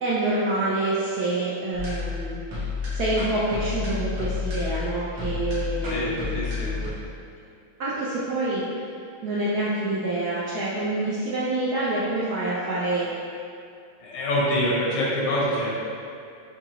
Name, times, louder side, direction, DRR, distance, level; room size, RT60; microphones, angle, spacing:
voice 1, 0.0-2.3 2.9-6.3 7.8-8.8 9.2-13.1, right 2 dB, 70° right, -8 dB, 0.9 m, -27 dB
sound 1, 1.7-6.9, left 4 dB, 90° right, 2.0 m, -30 dB
voice 2, 5.9-6.8 14.0-15.7, equal, 90° left, -7 dB, 2.0 m, -25 dB
5.8 x 2.9 x 2.9 m, 2.5 s
omnidirectional pair, 2.3 m